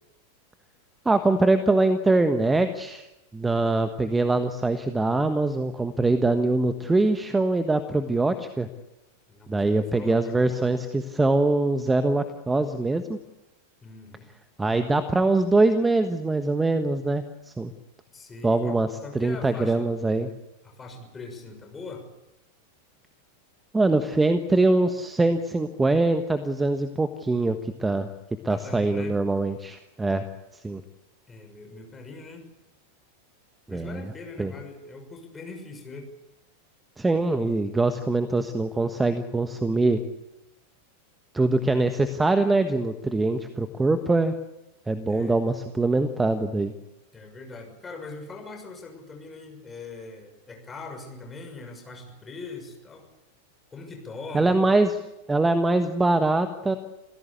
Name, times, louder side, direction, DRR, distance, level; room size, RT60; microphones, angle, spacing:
voice 1, 1.0-3.1 3.3-8.7 9.5-13.2 14.6-17.7 18.4-18.9 19.1-20.3 23.7-28.1 28.4-30.2 30.5-30.8 33.7-34.1 34.4-34.5 37.0-40.0 41.3-44.3 44.9-46.7 54.3-55.0 55.3-56.8, right 2 dB, 10° right, 10 dB, 1.3 m, -23 dB
voice 2, 9.3-10.7 13.8-14.3 18.1-19.9 20.6-22.1 28.5-29.2 31.3-32.5 33.7-36.1 45.0-45.4 47.1-53.1 53.7-54.6, left 3 dB, 15° left, 4 dB, 6.3 m, -41 dB
28.0 x 16.5 x 8.4 m, 0.94 s
figure-of-eight pair, 90°, 0 cm